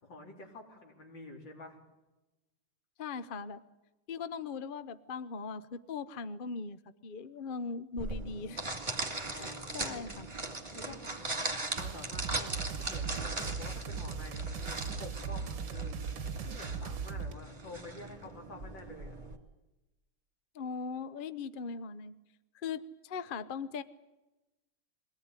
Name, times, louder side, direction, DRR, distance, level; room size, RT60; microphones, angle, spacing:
voice 1, 0.0-1.8 9.3-10.1 10.7-19.2, left 2 dB, 80° left, 1 dB, 4.4 m, -49 dB
voice 2, 3.0-3.6 4.1-8.6 9.3-10.3 20.5-22.1 22.5-23.8, left 5 dB, 45° left, 14 dB, 0.6 m, -39 dB
sound 1, 8.0-19.4, right 2 dB, 25° right, 2.5 m, -39 dB
sound 2, 11.8-17.3, right 6 dB, 70° right, 1.6 m, -38 dB
22.5 x 18.0 x 9.7 m, 1.0 s
omnidirectional pair, 2.0 m